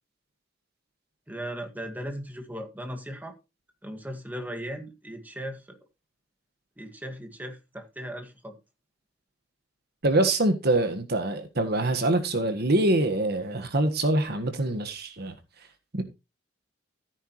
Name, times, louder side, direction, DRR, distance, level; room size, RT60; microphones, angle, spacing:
voice 1, 1.3-3.4 3.8-5.8 6.8-8.6, equal, 10° right, 1.9 m, -37 dB
voice 2, 10.0-15.3 15.9-16.0, right 2 dB, 55° right, 1.5 m, -24 dB
14.5 x 9.2 x 3.1 m
head